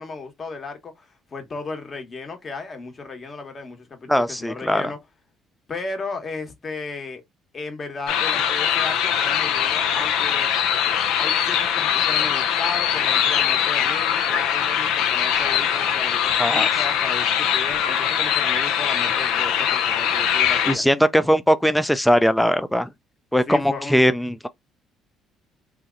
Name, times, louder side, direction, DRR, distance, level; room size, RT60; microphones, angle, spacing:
voice 1, 0.0-5.0 5.7-7.2 7.5-10.5 11.2-20.8 23.5-24.0, left 3 dB, 40° left, 1.2 m, -35 dB
voice 2, 4.1-4.8 16.4-16.7 20.7-22.9 23.3-24.5, equal, 5° left, 0.4 m, -20 dB
sound 1, 8.1-20.7, left 9 dB, 75° left, 0.5 m, -22 dB
2.8 x 2.2 x 3.7 m
hypercardioid pair, 60°, 0 cm